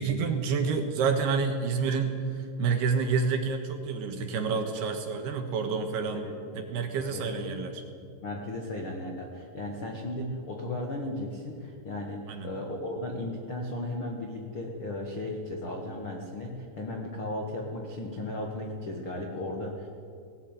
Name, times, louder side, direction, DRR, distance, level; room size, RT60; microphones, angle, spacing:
voice 1, 0.0-6.2 6.6-7.7 12.3-12.5, right 5 dB, 65° right, 5 dB, 3.1 m, -28 dB
voice 2, 6.1-6.6 7.0-7.5 7.9-19.9, left 1 dB, 65° left, 1 dB, 1.3 m, -36 dB
19.0 x 18.0 x 9.2 m, 2.4 s
omnidirectional pair, 5.7 m